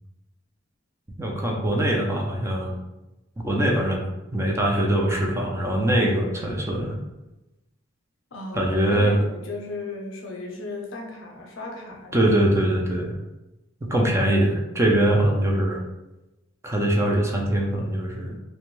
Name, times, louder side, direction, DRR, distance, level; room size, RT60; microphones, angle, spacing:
voice 1, 1.2-2.8 3.4-4.0 4.3-7.0 8.5-9.2 12.1-13.2 13.8-15.8 16.6-18.4, right 1 dB, 15° right, -1 dB, 0.4 m, -22 dB
voice 2, 8.3-12.1, left 2 dB, 75° left, 1 dB, 0.6 m, -35 dB
2.6 x 2.2 x 3.0 m, 0.99 s
head